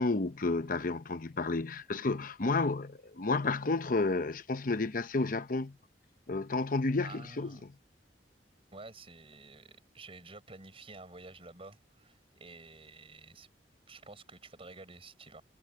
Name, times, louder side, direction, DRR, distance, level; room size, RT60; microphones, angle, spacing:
voice 1, 0.0-5.8 6.3-7.7, left 3 dB, 50° left, 0.9 m, -31 dB
voice 2, 7.0-7.6 8.7-13.5 13.9-15.4, right 3 dB, 35° right, 5.5 m, -51 dB
head